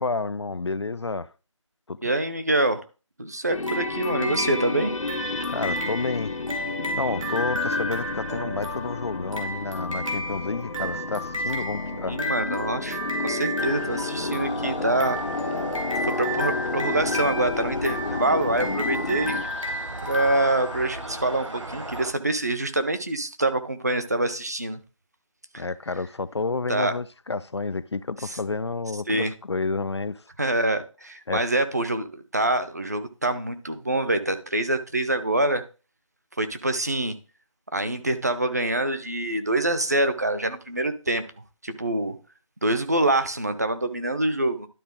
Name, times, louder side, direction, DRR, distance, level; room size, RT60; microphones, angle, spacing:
voice 1, 0.0-1.3 1.9-2.0 5.5-6.3 6.9-12.2 25.6-30.2 31.3-31.4, left 3 dB, 55° left, 0.4 m, -30 dB
voice 2, 2.0-2.8 3.2-4.9 8.4-8.5 11.9-13.0 13.2-15.2 16.0-19.4 20.0-24.8 25.5-25.6 26.7-26.9 28.2-28.4 29.1-29.3 30.4-35.6 36.4-37.2 37.7-41.2 41.6-42.2 42.6-44.7, right 2 dB, 30° right, 0.6 m, -25 dB
sound 1, 3.5-19.4, left 3 dB, 80° left, 1.0 m, -31 dB
sound 2, 3.6-21.3, equal, 85° right, 2.2 m, -32 dB
sound 3, 13.6-22.1, right 1 dB, 65° right, 1.5 m, -38 dB
12.0 x 3.9 x 3.7 m
figure-of-eight pair, 170°, 17 cm